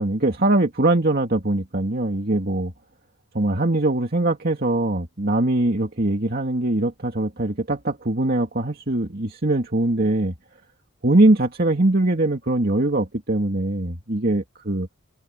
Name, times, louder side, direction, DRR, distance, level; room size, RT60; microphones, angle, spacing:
voice 1, 0.0-2.7 3.3-10.3 11.0-14.9, right 2 dB, 45° right, 2.4 m, -22 dB
head